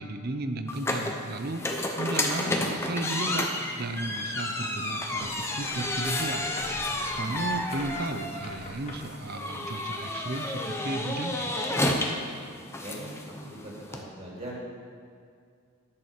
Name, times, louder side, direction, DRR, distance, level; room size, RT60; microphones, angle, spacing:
voice 1, 0.0-1.7 2.0-3.5 3.8-6.5 7.1-11.8, right 2 dB, 45° right, 8 dB, 0.6 m, -34 dB
sound 1, 0.7-14.0, left 1 dB, 10° left, 0.7 m, -31 dB
sound 2, 5.1-9.2, left 1 dB, 30° left, 1.2 m, -44 dB
voice 2, 12.8-14.6, right 1 dB, 30° right, -5 dB, 2.6 m, -41 dB
11.0 x 6.8 x 6.7 m, 2.2 s
head